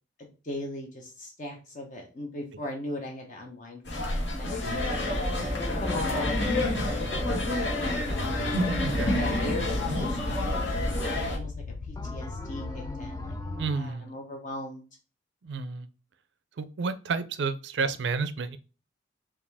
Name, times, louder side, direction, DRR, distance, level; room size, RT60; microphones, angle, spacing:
voice 1, 0.2-4.6 5.4-8.3 9.1-11.5 11.9-14.8, left 1 dB, 40° left, 1 dB, 0.7 m, -39 dB
sound 1, 3.9-11.4, left 1 dB, 65° left, 1.3 m, -28 dB
sound 2, 6.1-6.7 7.1-7.7 8.1-10.6 11.0-11.5 12.0-13.9, left 1 dB, 15° left, 0.4 m, -41 dB
sound 3, 8.1-13.6, left 4 dB, 90° left, 0.3 m, -39 dB
voice 2, 8.8-9.2 13.6-14.1 15.4-15.9 16.6-18.6, right 4 dB, 65° right, 13 dB, 0.4 m, -31 dB
4.8 x 2.5 x 3.4 m, 0.34 s
head